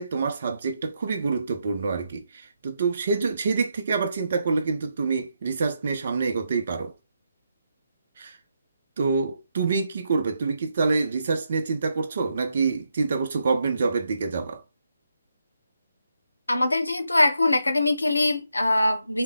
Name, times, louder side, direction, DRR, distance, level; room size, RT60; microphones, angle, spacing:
voice 1, 0.0-6.9 8.2-8.4 9.0-14.6, right 4 dB, 50° right, 0.6 m, -26 dB
voice 2, 16.5-19.2, left 2 dB, 80° left, 0.6 m, -22 dB
3.3 x 2.2 x 3.6 m
figure-of-eight pair, 135°, 0 cm